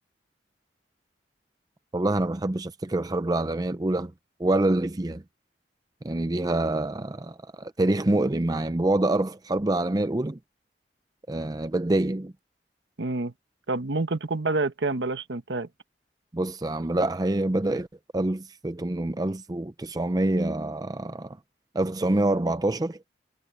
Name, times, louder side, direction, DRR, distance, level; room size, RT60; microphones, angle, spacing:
voice 1, 1.9-4.1 4.4-5.2 6.0-10.4 11.3-12.3 16.3-17.9 18.1-21.4 21.7-23.0, right 2 dB, 20° right, 0.5 m, -26 dB
voice 2, 13.0-13.3 13.7-15.7, right 3 dB, 90° right, 1.2 m, -28 dB
head